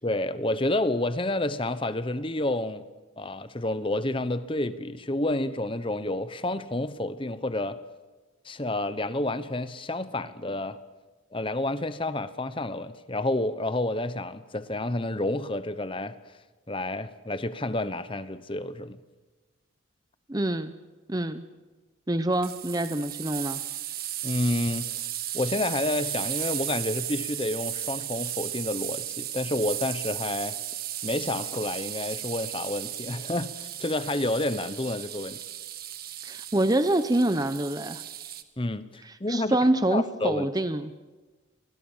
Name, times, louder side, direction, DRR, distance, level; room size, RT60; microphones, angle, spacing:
voice 1, 0.0-2.9 3.2-7.8 8.4-10.8 11.3-16.2 16.7-19.0 24.2-25.0 25.3-30.6 31.0-35.4 38.6-39.6 39.9-40.5, left 1 dB, 25° left, 1.0 m, -29 dB
voice 2, 20.3-20.7 21.1-21.4 22.1-23.6 36.2-38.0 39.3-40.9, right 1 dB, 20° right, 0.8 m, -26 dB
sound 1, 22.4-38.4, right 12 dB, 50° right, 1.5 m, -35 dB
30.0 x 23.5 x 7.3 m
head